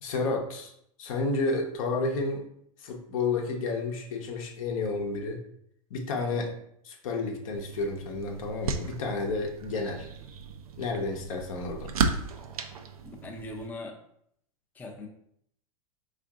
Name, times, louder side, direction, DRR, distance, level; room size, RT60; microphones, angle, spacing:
voice 1, 0.0-0.7 1.0-2.5 2.8-5.4 5.9-6.5 6.8-10.1 10.8-11.9, left 3 dB, 70° left, 3 dB, 0.8 m, -31 dB
sound 1, 7.5-13.7, right 5 dB, 90° right, 0.4 m, -35 dB
voice 2, 13.0-14.0 14.7-15.1, left 2 dB, 10° left, 1 dB, 0.4 m, -40 dB
3.6 x 2.5 x 3.5 m, 0.70 s
hypercardioid pair, 115°, 18 cm